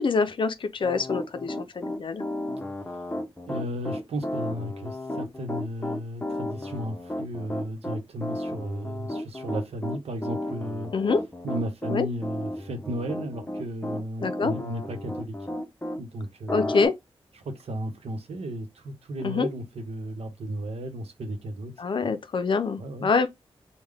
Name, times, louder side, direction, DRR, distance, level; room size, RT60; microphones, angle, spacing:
voice 1, 0.0-2.2 10.9-11.2 11.9-12.1 14.2-14.5 16.5-16.9 19.2-19.5 21.8-23.3, left 4 dB, 55° left, 0.5 m, -25 dB
Piano, 0.8-16.0 16.5-16.9, left 1 dB, 15° left, 0.7 m, -33 dB
voice 2, 3.5-10.9 11.4-15.3 16.0-16.7 17.4-21.7 22.0-22.1 22.8-23.1, right 1 dB, 80° right, 0.9 m, -34 dB
3.7 x 2.2 x 3.4 m
wide cardioid pair, 105°, 10 cm